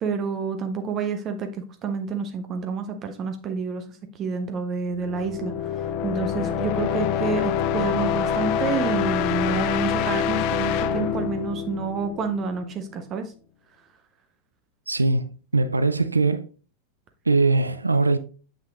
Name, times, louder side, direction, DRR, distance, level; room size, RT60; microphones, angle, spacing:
voice 1, 0.0-3.8 4.1-13.3, right 5 dB, 30° right, 0.6 m, -29 dB
sound 1, 4.9-12.7, left 8 dB, 45° left, 0.4 m, -26 dB
voice 2, 14.9-16.5 17.3-18.2, right 3 dB, 80° right, 0.3 m, -21 dB
7.5 x 5.7 x 2.3 m
figure-of-eight pair, 90°, 0 cm